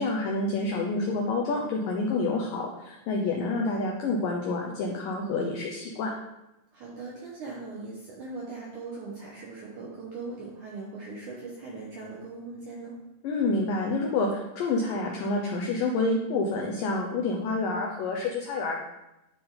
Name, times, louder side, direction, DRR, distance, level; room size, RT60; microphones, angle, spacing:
voice 1, 0.0-6.1 13.2-18.8, left 3 dB, 85° left, 0 dB, 1.9 m, -28 dB
voice 2, 6.7-13.0, right 3 dB, 70° right, -3 dB, 1.9 m, -40 dB
11.0 x 4.3 x 3.9 m, 0.92 s
omnidirectional pair, 4.9 m